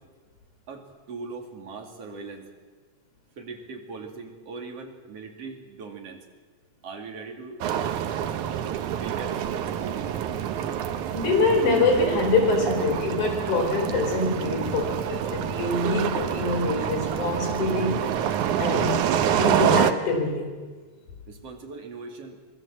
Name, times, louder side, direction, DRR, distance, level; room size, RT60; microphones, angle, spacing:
voice 1, 0.7-2.5 3.4-6.2 6.8-7.6 9.0-10.1 21.3-22.4, right 4 dB, 55° right, 2 dB, 3.6 m, -40 dB
sound 1, 7.6-19.9, right 9 dB, 85° right, 2.5 m, -27 dB
voice 2, 11.1-18.0 18.6-18.9 19.4-20.5, left 3 dB, 80° left, 3 dB, 5.9 m, -24 dB
26.0 x 21.0 x 7.7 m, 1.4 s
omnidirectional pair, 3.4 m